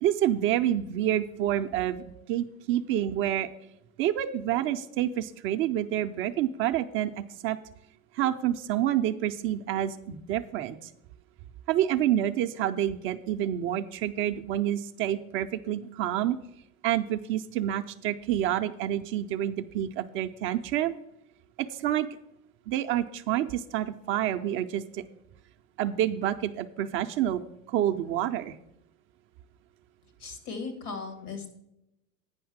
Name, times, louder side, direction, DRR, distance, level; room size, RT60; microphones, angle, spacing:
voice 1, 0.0-3.5 4.0-7.6 8.1-10.9 11.7-16.4 16.8-21.0 21.6-22.1 22.7-25.0 25.8-28.6, right 11 dB, 30° right, 7 dB, 0.3 m, -28 dB
voice 2, 30.2-31.5, left 4 dB, 85° left, 6 dB, 2.7 m, -37 dB
9.5 x 5.6 x 7.2 m, 0.86 s
hypercardioid pair, 110°, 45 cm